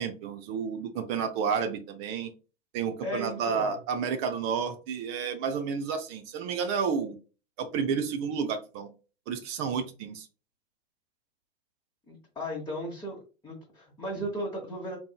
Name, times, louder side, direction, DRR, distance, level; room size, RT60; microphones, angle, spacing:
voice 1, 0.0-2.3 2.7-7.2 7.6-8.9 9.3-10.3, right 6 dB, 25° right, 6 dB, 0.4 m, -31 dB
voice 2, 3.0-3.8 12.1-13.2 13.4-15.0, equal, 10° left, -5 dB, 1.0 m, -35 dB
3.9 x 2.6 x 2.3 m, 0.33 s
figure-of-eight pair, 100°, 36 cm